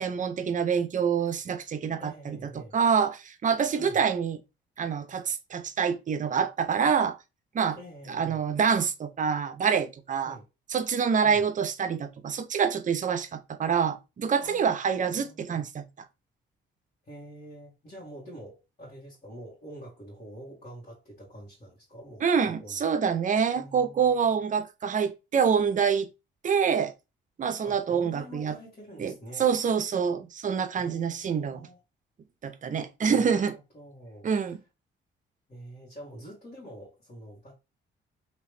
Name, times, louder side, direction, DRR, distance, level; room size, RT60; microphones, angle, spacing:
voice 1, 0.0-2.4 2.7-4.4 4.8-7.2 7.5-7.8 8.1-10.4 10.7-15.8 22.2-26.1 26.4-26.9 27.4-28.5 29.0-29.1 29.4-31.6 32.4-33.6 34.2-34.6, right 6 dB, 40° right, 0.6 m, -26 dB
voice 2, 2.0-2.8 3.6-4.0 7.7-8.4 10.2-10.4 11.2-11.4 14.4-15.7 17.0-22.8 23.5-24.4 27.6-29.5 30.8-31.8 33.1-34.5 35.5-37.5, right 1 dB, 35° left, 1.7 m, -46 dB
3.0 x 2.8 x 3.2 m
cardioid pair, 90°, 20 cm